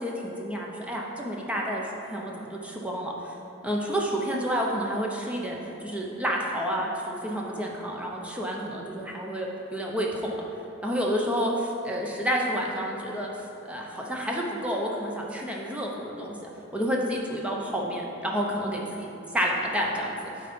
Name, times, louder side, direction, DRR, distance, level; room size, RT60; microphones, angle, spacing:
voice 1, 0.0-3.3 3.6-10.3 10.8-13.3 13.6-20.5, equal, 5° right, -2 dB, 0.8 m, -30 dB
9.1 x 3.9 x 5.3 m, 2.9 s
head